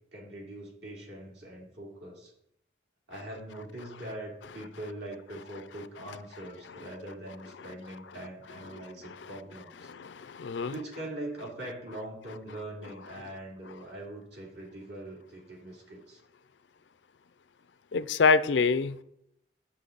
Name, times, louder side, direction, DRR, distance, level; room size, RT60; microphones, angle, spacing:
voice 1, 0.1-2.3 3.1-9.9 10.7-16.2, right 1 dB, 70° right, 2.9 m, -42 dB
voice 2, 9.9-10.7 17.9-19.0, left 4 dB, 85° left, 0.5 m, -25 dB
9.8 x 7.7 x 3.9 m
head